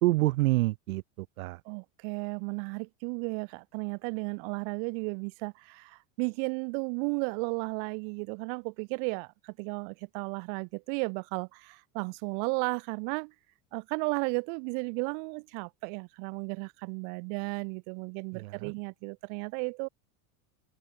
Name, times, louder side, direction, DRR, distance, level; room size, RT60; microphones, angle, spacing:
voice 1, 0.0-1.6 18.3-18.7, right 20 dB, 85° right, 1.1 m, -27 dB
voice 2, 1.6-13.3 13.7-19.9, right 40 dB or more, 60° right, 1.2 m, -34 dB
open air
supercardioid pair, 130°, 41 cm